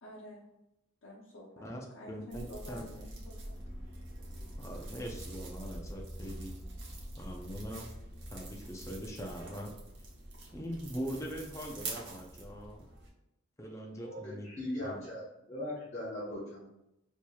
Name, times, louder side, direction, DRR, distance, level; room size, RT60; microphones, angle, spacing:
voice 1, 0.0-0.4 1.0-1.7 1.9-3.6, equal, 90° left, -7 dB, 0.8 m, -49 dB
voice 2, 1.6-2.9 4.6-6.5 7.2-7.9 8.3-9.7 10.5-12.9 13.6-14.6 14.8-15.0, equal, 15° left, 0 dB, 0.5 m, -42 dB
sound 1, 2.3-13.1, right 1 dB, 60° right, 0.9 m, -45 dB
voice 3, 14.0-15.2 15.5-16.6, left 1 dB, 35° left, -10 dB, 0.9 m, -39 dB
4.5 x 2.9 x 2.3 m, 0.87 s
head